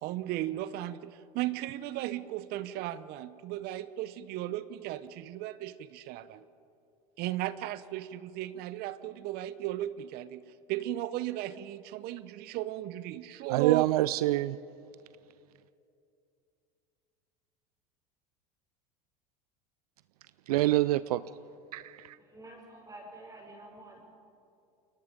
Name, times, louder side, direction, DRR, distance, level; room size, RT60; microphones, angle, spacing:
voice 1, 0.0-6.4 7.2-13.9, right 14 dB, 55° right, 15 dB, 0.8 m, -36 dB
voice 2, 13.5-14.6 20.5-21.2 21.7-22.2, right 16 dB, 80° right, 16 dB, 0.5 m, -26 dB
voice 3, 22.2-24.2, right 1 dB, 20° right, -2 dB, 7.2 m, -49 dB
29.0 x 22.0 x 5.2 m, 2.6 s
hypercardioid pair, 90°, 19 cm